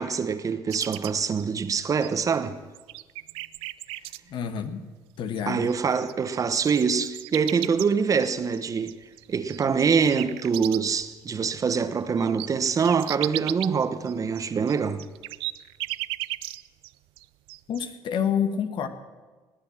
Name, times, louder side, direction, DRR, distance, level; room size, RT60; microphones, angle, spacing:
voice 1, 0.0-2.6 5.5-9.0 9.3-15.0, right 6 dB, 40° right, 1.0 m, -25 dB
sound 1, 0.7-2.4 2.7-4.2 5.4-5.5 5.7-11.0 11.4-11.5 11.8-16.9 17.2-17.8, right 18 dB, 80° right, 0.4 m, -36 dB
voice 2, 3.9-4.9 5.2-5.7 17.7-18.9, left 8 dB, 60° left, 1.3 m, -29 dB
18.5 x 8.6 x 7.3 m
supercardioid pair, 85°, 9 cm